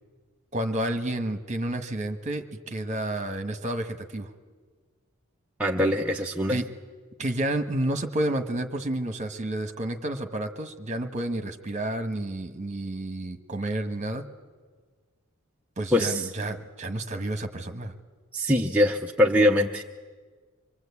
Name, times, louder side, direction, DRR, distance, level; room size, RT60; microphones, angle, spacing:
voice 1, 0.5-4.3 6.5-6.6 7.2-14.2 15.8-17.9, right 1 dB, 35° right, 7 dB, 1.4 m, -30 dB
voice 2, 5.6-6.6 15.9-16.2 18.3-19.8, left 1 dB, 5° right, -1 dB, 0.7 m, -22 dB
25.5 x 22.5 x 8.4 m, 1.5 s
head